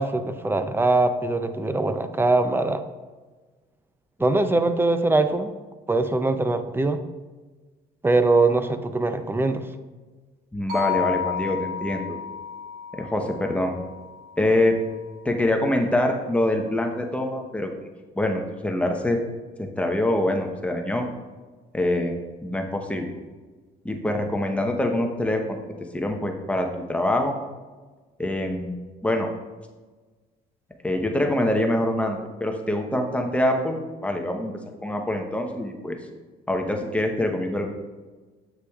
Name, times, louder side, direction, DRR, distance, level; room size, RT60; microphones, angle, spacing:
voice 1, 0.0-2.8 4.2-5.5 5.9-7.0 8.0-9.7, right 2 dB, 15° right, 9 dB, 0.4 m, -22 dB
voice 2, 10.5-12.2 12.9-13.7 14.4-14.8 15.2-17.7 18.1-19.2 19.6-21.1 21.7-22.2 22.4-23.1 23.8-25.6 25.9-27.4 28.2-28.8 29.0-29.3 30.8-34.5 34.8-36.0 36.5-37.7, left 1 dB, 5° left, 3 dB, 0.8 m, -25 dB
sound 1, 10.7-14.9, left 9 dB, 85° right, 1.8 m, -32 dB
7.9 x 6.6 x 2.3 m, 1.3 s
cardioid pair, 110°, 17 cm